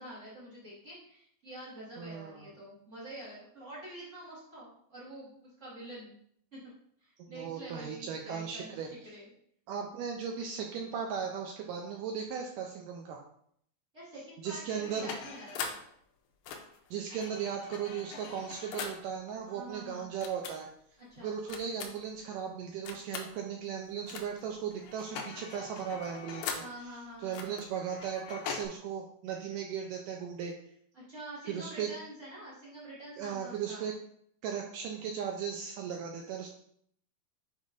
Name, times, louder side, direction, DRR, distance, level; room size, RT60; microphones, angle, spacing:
voice 1, 0.0-6.2 6.5-6.6 7.0-9.3 13.9-15.7 19.4-20.1 21.0-21.3 26.6-27.6 30.9-33.9, right 1 dB, 45° right, -8 dB, 0.9 m, -47 dB
voice 2, 2.0-2.5 7.3-8.9 9.7-13.2 14.4-15.1 16.9-20.7 21.2-26.7 27.2-30.5 31.5-31.9 33.2-33.9 34.4-36.5, right 7 dB, 85° right, 1 dB, 1.9 m, -37 dB
sound 1, 14.6-15.9 16.4-19.1 20.2-20.6 21.5-22.1 22.9-23.3 24.1-24.5 24.7-26.8 27.3-28.7, left 6 dB, 75° left, 2.3 m, -41 dB
7.2 x 5.2 x 2.5 m, 0.66 s
omnidirectional pair, 4.3 m